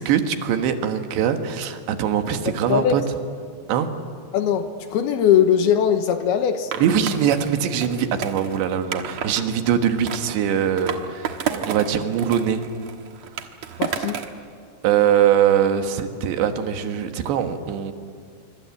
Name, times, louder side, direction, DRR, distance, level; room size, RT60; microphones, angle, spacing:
voice 1, 0.0-3.0 3.7-3.9 6.8-12.6 14.8-17.9, right 9 dB, 80° right, 7 dB, 3.6 m, -22 dB
voice 2, 4.3-6.7 13.8-14.2, left 9 dB, 75° left, 8 dB, 2.8 m, -20 dB
Skateboard, 6.7-9.4 10.1-11.9 12.2-14.4, right 8 dB, 65° right, 1.8 m, -31 dB
25.5 x 25.0 x 8.4 m, 2.1 s
omnidirectional pair, 5.0 m